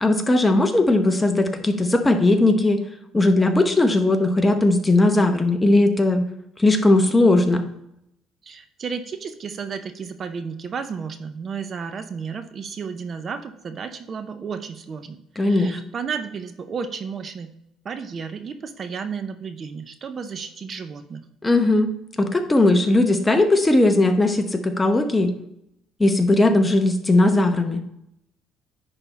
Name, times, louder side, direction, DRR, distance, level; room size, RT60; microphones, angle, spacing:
voice 1, 0.0-2.8 3.1-6.3 6.6-7.6 15.4-15.8 21.4-21.9 22.2-25.3 26.0-27.8, left 2 dB, 15° left, 6 dB, 0.8 m, -18 dB
voice 2, 8.4-17.5 17.8-21.2, right 6 dB, 40° right, 9 dB, 0.5 m, -33 dB
10.0 x 3.5 x 4.0 m, 0.80 s
cardioid pair, 120°, 0 cm